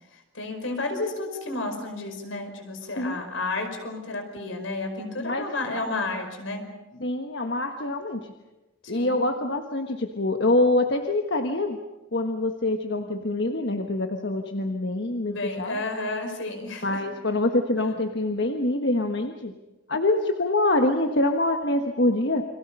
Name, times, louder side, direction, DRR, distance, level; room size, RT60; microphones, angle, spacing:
voice 1, 0.1-6.7 8.9-9.2 15.3-17.0, left 2 dB, 80° left, 5 dB, 5.3 m, -32 dB
voice 2, 5.2-5.5 7.0-8.3 8.9-11.8 12.1-15.8 16.8-19.5 19.9-22.4, left 2 dB, 60° left, 5 dB, 1.4 m, -25 dB
29.5 x 24.5 x 5.5 m, 1.1 s
head